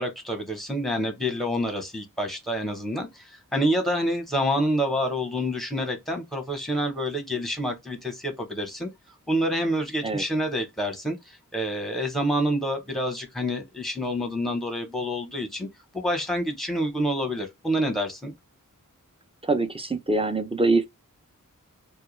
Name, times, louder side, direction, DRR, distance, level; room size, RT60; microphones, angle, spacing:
voice 1, 0.0-8.9 9.3-11.2 11.5-15.7 15.9-18.3, equal, ahead, 0.8 m, -27 dB
voice 2, 19.4-20.8, right 2 dB, 15° right, 0.5 m, -24 dB
2.2 x 2.2 x 3.1 m
wide cardioid pair, 50°, 33 cm